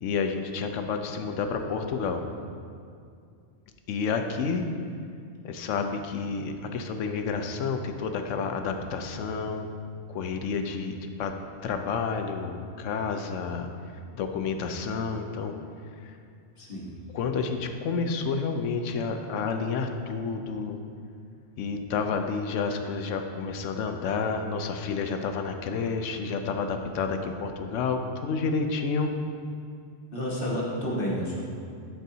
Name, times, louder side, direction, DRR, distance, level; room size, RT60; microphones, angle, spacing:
voice 1, 0.0-2.2 3.9-4.6 5.4-9.7 10.1-11.3 11.6-13.7 14.1-15.5 16.0-16.1 17.1-20.8 21.6-29.1, left 5 dB, 80° left, 6 dB, 0.9 m, -30 dB
voice 2, 16.6-17.0 30.1-31.5, equal, 50° left, -5 dB, 1.4 m, -30 dB
11.5 x 4.5 x 2.8 m, 2.4 s
omnidirectional pair, 1.3 m